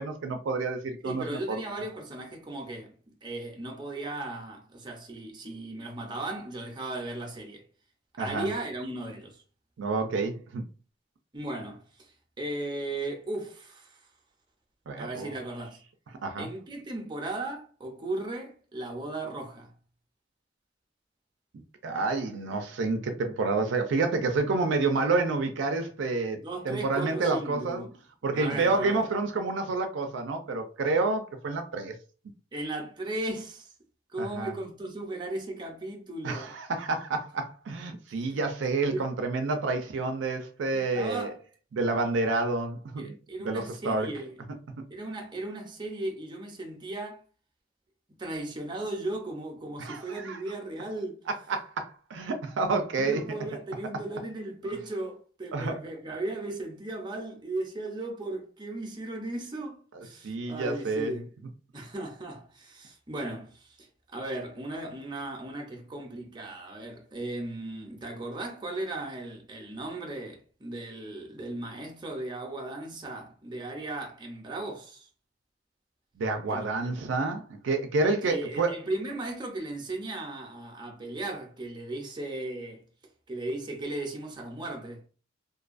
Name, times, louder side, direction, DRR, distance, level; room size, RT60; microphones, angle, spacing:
voice 1, 0.0-1.6 8.2-8.5 9.8-10.6 14.9-15.3 16.2-16.5 21.8-27.9 28.2-31.9 34.2-34.5 36.2-41.3 41.7-43.1 43.4-44.1 49.8-50.4 51.3-53.2 55.5-55.8 60.2-61.1 76.2-78.7, right 3 dB, 75° right, 0.4 m, -29 dB
voice 2, 1.0-7.6 8.2-9.4 11.3-14.0 15.0-15.8 16.4-19.7 26.4-27.9 28.3-29.1 32.5-33.7 34.1-36.5 38.3-38.4 38.9-39.1 40.7-41.4 43.0-44.4 44.9-47.2 48.2-51.2 52.9-61.3 61.7-75.1 76.5-76.6 78.2-82.8 83.3-85.0, right 2 dB, 25° right, 0.6 m, -36 dB
2.5 x 2.3 x 2.4 m
head